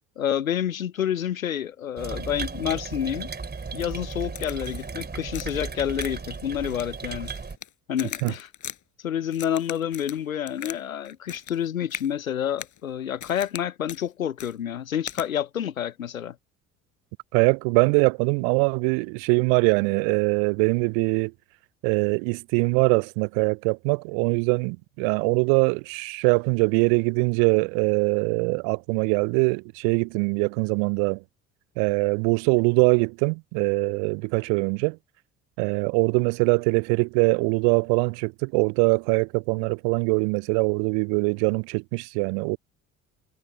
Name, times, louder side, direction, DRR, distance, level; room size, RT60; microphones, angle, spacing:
voice 1, 0.2-3.3 3.7-7.3 7.9-8.5 9.0-16.4, left 9 dB, 90° left, 0.7 m, -28 dB
sound 1, 2.0-7.6, right 5 dB, 25° right, 3.8 m, -35 dB
Crack, 4.3-4.9 5.3-5.7 6.0-6.4 6.7-7.7 8.0-8.8 9.3-10.8 11.0-11.6 11.9-12.1 12.6-12.8 13.2-13.6 13.9-14.0 14.4-14.5 15.1-15.3, left 10 dB, 50° left, 5.6 m, -39 dB
voice 2, 17.3-21.3 21.8-31.2 31.8-35.0 35.6-42.6, right 40 dB or more, 60° right, 0.5 m, -23 dB
figure-of-eight pair, 50°, 40 cm